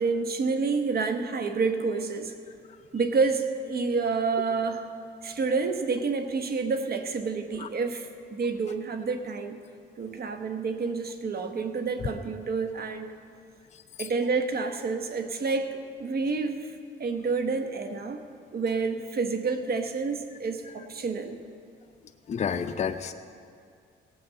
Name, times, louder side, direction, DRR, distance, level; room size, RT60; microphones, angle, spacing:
voice 1, 0.0-2.3 2.9-4.8 5.2-9.6 10.0-13.1 14.0-16.7 17.0-18.2 18.5-21.4, right 4 dB, 50° right, 7 dB, 1.1 m, -29 dB
voice 2, 22.3-23.1, left 7 dB, 35° left, 7 dB, 0.5 m, -29 dB
17.0 x 6.3 x 7.5 m, 2.3 s
cardioid pair, 90°, 20 cm